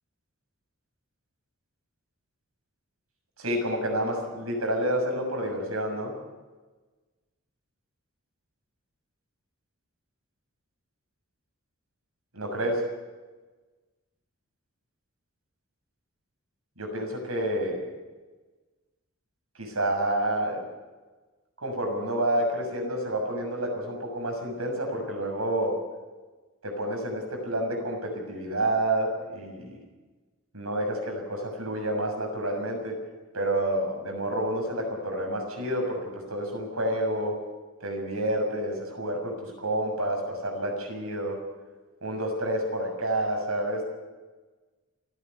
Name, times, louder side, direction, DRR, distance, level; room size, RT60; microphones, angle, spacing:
voice 1, 3.4-6.2 12.3-12.9 16.8-17.9 19.6-20.6 21.6-25.8 26.6-29.8 30.5-33.0 33.3-37.4 37.8-41.4 42.0-43.9, right 1 dB, 80° right, 2 dB, 6.8 m, -29 dB
29.5 x 10.0 x 9.7 m, 1.3 s
head